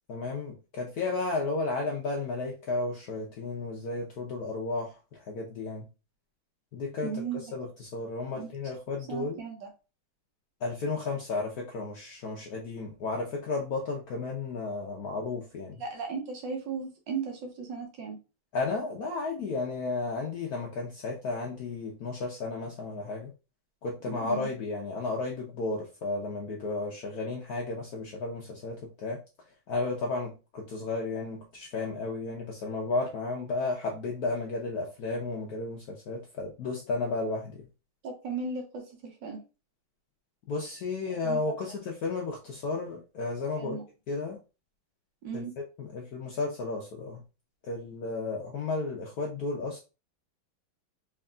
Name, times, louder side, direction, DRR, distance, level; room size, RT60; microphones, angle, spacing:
voice 1, 0.1-5.9 6.7-7.2 7.5-9.4 10.6-15.8 18.5-23.3 23.8-29.2 29.7-37.6 40.5-43.8 44.1-44.4 45.3-47.2 47.7-49.8, left 3 dB, 70° left, 0.9 m, -33 dB
voice 2, 7.0-7.5 8.3-8.5 9.1-9.7 15.8-18.2 24.1-24.5 38.0-39.4 41.2-41.4 43.6-43.8 45.2-45.5, right 5 dB, 65° right, 1.5 m, -36 dB
3.6 x 3.5 x 2.3 m
omnidirectional pair, 2.2 m